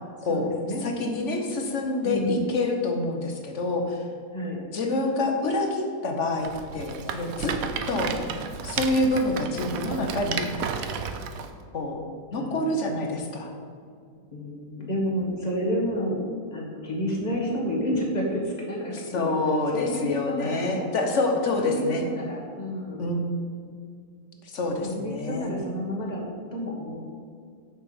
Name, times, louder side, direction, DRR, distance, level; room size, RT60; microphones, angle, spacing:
voice 1, 0.3-0.8 2.0-2.5 4.3-4.6 12.3-12.8 14.1-16.2 16.5-19.3 19.7-20.9 21.6-23.1 24.8-26.2 26.5-27.0, equal, 25° left, -2 dB, 1.7 m, -30 dB
voice 2, 0.8-4.0 4.7-7.5 7.9-8.1 8.6-10.5 11.7-12.0 12.3-13.5 19.1-22.0 23.0-23.3 24.4-25.6, left 2 dB, 50° left, 3 dB, 1.4 m, -27 dB
Rattle, 6.4-11.5, right 6 dB, 70° right, 1.0 m, -33 dB
7.1 x 6.0 x 7.0 m, 2.2 s
omnidirectional pair, 1.7 m